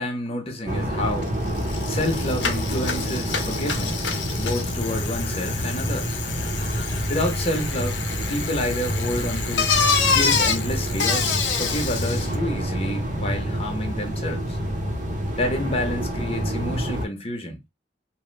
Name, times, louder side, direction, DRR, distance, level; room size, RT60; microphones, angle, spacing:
voice 1, 0.0-1.3 1.9-6.2 7.1-8.0 8.3-9.7 10.0-14.6 15.4-17.6, left 1 dB, 35° left, 0.8 m, -29 dB
sound 1, 0.7-17.1, equal, 45° right, 0.7 m, -28 dB
Bicycle, 1.2-1.3 1.6-12.4, left 5 dB, 75° left, 0.7 m, -27 dB
3.0 x 2.1 x 3.1 m
head